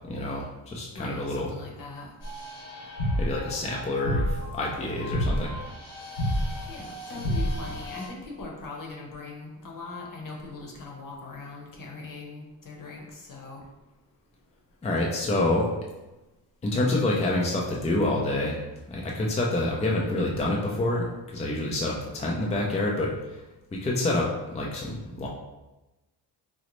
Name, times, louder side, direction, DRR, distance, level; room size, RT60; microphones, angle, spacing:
voice 1, 0.0-1.5 3.2-5.5 14.8-15.7 16.6-18.6 18.9-23.4 23.7-25.3, left 2 dB, 15° left, -2 dB, 0.5 m, -27 dB
voice 2, 0.9-2.1 6.7-13.6, left 3 dB, 50° left, 0 dB, 1.0 m, -40 dB
sound 1, 2.2-8.1, equal, 80° left, 1.2 m, -30 dB
3.9 x 2.0 x 3.0 m, 1.1 s
cardioid pair, 80°, 41 cm